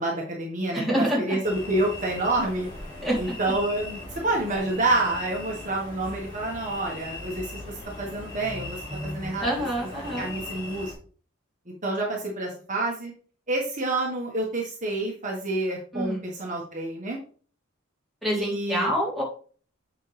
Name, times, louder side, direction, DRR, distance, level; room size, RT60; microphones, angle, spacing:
voice 1, 0.0-8.8 9.0-9.4 10.2-10.9 11.8-13.1 13.5-17.2 18.3-18.9, right 2 dB, 40° right, -1 dB, 1.5 m, -28 dB
voice 2, 0.7-1.4 3.0-3.3 9.4-10.3 15.9-16.3 18.2-19.2, equal, ahead, -5 dB, 3.4 m, -27 dB
sound 1, 1.4-10.9, left 2 dB, 20° left, 4.0 m, -39 dB
8.8 x 5.3 x 3.4 m, 0.42 s
head